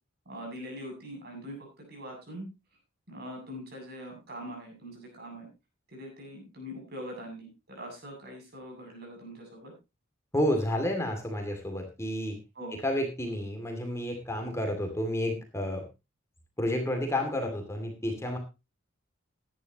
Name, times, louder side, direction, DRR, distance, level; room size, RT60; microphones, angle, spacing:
voice 1, 0.3-2.5 3.1-5.5 5.9-9.7 12.5-12.8, equal, 55° right, 1 dB, 7.6 m, -42 dB
voice 2, 10.3-12.4 12.8-15.8 16.6-18.4, left 1 dB, 15° left, 4 dB, 2.5 m, -30 dB
16.5 x 11.0 x 3.0 m, 0.26 s
head